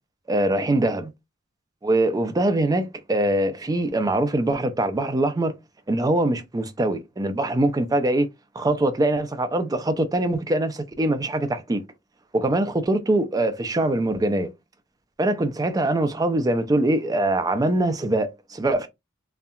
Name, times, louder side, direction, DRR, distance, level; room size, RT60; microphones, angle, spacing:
voice 1, 0.3-1.1 1.8-5.5 5.9-8.3 8.6-11.8 12.3-14.5 15.2-18.9, right 1 dB, 20° right, 0.4 m, -23 dB
2.7 x 2.2 x 2.3 m
head